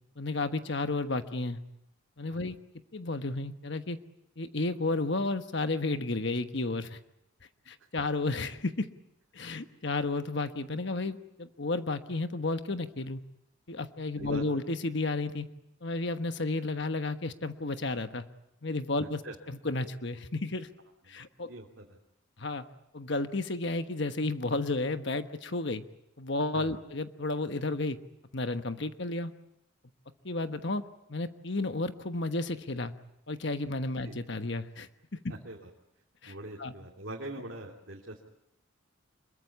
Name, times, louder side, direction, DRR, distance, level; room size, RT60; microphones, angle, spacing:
voice 1, 0.2-1.6 2.2-2.6 2.9-4.0 4.4-7.0 7.7-8.9 9.3-13.2 13.7-15.5 15.8-18.2 18.6-19.2 19.5-20.7 21.1-21.5 22.4-22.6 22.9-25.8 26.2-28.0 28.3-29.3 30.2-30.8 31.1-32.9 33.3-34.9 36.2-36.3 36.6-36.7, left 2 dB, 55° left, 9 dB, 1.2 m, -32 dB
voice 2, 21.1-22.0 26.5-26.7 34.0-34.1 35.3-35.7 36.3-38.2, right 1 dB, 60° right, -1 dB, 2.8 m, -43 dB
26.0 x 22.0 x 8.5 m, 0.80 s
head